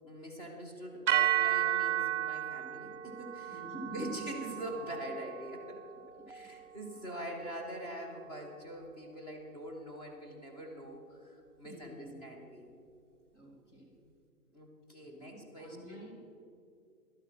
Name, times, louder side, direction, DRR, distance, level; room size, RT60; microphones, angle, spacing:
voice 1, 0.0-3.6 3.9-5.8 6.3-12.7 14.5-16.0, right 1 dB, 25° left, 1 dB, 1.7 m, -44 dB
sound 1, 1.1-9.3, right 13 dB, 55° right, 0.5 m, -35 dB
voice 2, 3.5-4.1 6.2-6.7 6.9-7.0 11.6-12.3 13.3-14.0 15.0-16.2, right 1 dB, 50° left, -2 dB, 3.5 m, -48 dB
11.5 x 9.2 x 6.0 m, 2.4 s
hypercardioid pair, 180°, 46 cm